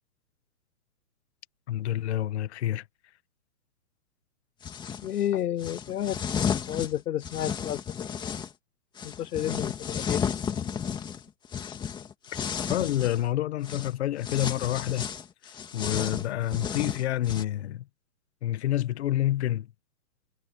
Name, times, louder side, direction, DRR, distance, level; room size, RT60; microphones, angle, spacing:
voice 1, 1.7-2.9 12.7-15.1 15.4-17.9 18.4-19.7, left 13 dB, 45° left, 1.8 m, -28 dB
sound 1, 4.6-5.1 5.6-8.5 9.0-13.3 13.6-13.9 14.2-17.4, left 7 dB, 10° left, 2.1 m, -33 dB
voice 2, 5.0-6.2 6.7-7.8 9.0-10.2, left 11 dB, 75° left, 0.9 m, -30 dB
hypercardioid pair, 160°, 46 cm